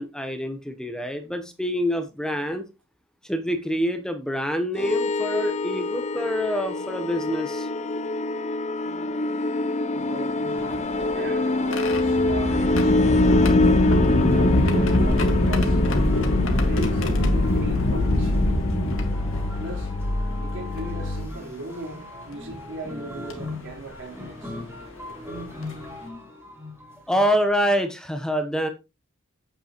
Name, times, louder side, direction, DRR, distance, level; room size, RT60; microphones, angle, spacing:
voice 1, 0.0-2.6 3.3-7.7 27.1-28.7, equal, 5° left, 0.9 m, -26 dB
sound 1, 4.8-21.3, left 2 dB, 35° left, 0.6 m, -25 dB
sound 2, 9.9-27.8, left 1 dB, 15° right, 2.8 m, -42 dB
voice 2, 9.9-10.4 10.9-13.2 14.3-15.8 16.6-18.5 19.6-19.9 20.4-24.6 25.3-25.5, right 2 dB, 65° right, 4.3 m, -38 dB
sound 3, 10.6-19.9 20.8-20.9 22.3-22.5 23.3-23.5 25.1-25.2 25.6-25.9, left 1 dB, 70° left, 2.0 m, -24 dB
9.1 x 8.1 x 3.0 m
head